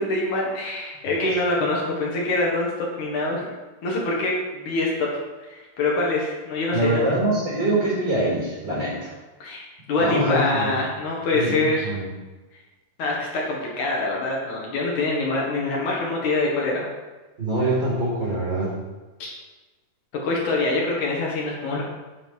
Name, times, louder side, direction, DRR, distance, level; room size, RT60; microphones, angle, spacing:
voice 1, 0.0-3.5 3.8-5.1 5.4-7.0 9.4-11.9 13.0-16.9 19.2-19.3 20.2-21.8, left 2 dB, 65° left, -2 dB, 3.0 m, -25 dB
voice 2, 6.7-9.1 10.0-10.7 11.3-12.1 17.4-18.7, right 1 dB, 30° right, -5 dB, 4.7 m, -24 dB
9.6 x 9.3 x 4.7 m, 1.2 s
omnidirectional pair, 3.9 m